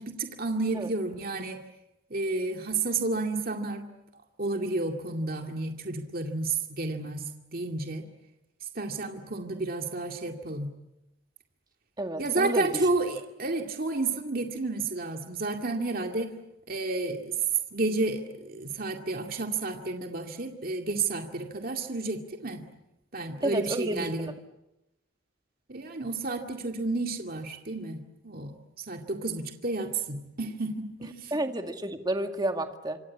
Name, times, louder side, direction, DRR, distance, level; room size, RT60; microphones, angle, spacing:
voice 1, 0.0-1.6 2.1-3.9 4.4-7.3 7.5-8.0 8.8-10.7 12.2-16.3 16.7-17.3 17.7-22.7 23.1-24.3 25.7-28.5 28.9-31.3, right 3 dB, 50° right, 4 dB, 2.2 m, -31 dB
voice 2, 12.0-12.7 23.4-24.4 31.3-33.0, right 1 dB, 20° right, 5 dB, 2.0 m, -31 dB
26.5 x 26.0 x 8.4 m, 0.92 s
head